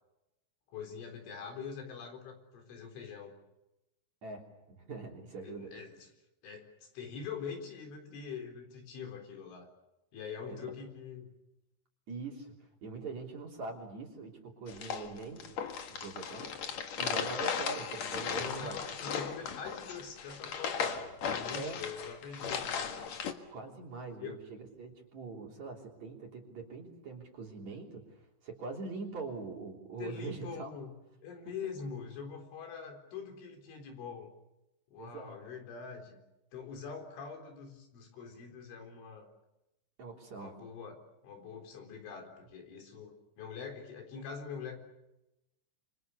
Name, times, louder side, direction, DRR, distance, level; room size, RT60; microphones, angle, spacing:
voice 1, 0.7-3.3 5.4-6.1 6.4-9.7 10.1-11.3 18.3-23.0 24.2-24.4 30.0-30.9 31.2-34.3 34.9-36.2 36.5-39.3 40.4-41.0 41.2-44.8, left 6 dB, 75° left, 3 dB, 6.4 m, -44 dB
voice 2, 4.2-5.7 10.5-10.7 12.1-15.6 15.9-16.6 17.0-18.8 21.5-21.8 23.5-30.7 35.0-35.4 40.0-40.5, right 4 dB, 40° right, 0 dB, 4.1 m, -43 dB
sound 1, 14.7-23.3, left 6 dB, 55° left, 2.0 m, -36 dB
28.0 x 25.5 x 6.8 m, 0.94 s
omnidirectional pair, 5.6 m